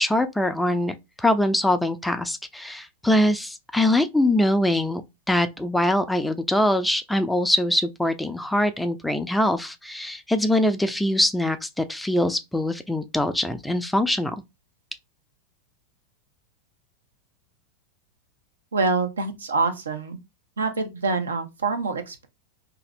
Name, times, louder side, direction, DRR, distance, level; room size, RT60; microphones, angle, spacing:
voice 1, 0.0-5.0 5.3-14.4, left 1 dB, 5° left, 0.3 m, -23 dB
voice 2, 18.7-20.2 20.6-22.3, right 4 dB, 70° right, 0.6 m, -25 dB
2.6 x 2.4 x 3.1 m
figure-of-eight pair, 90°, 0 cm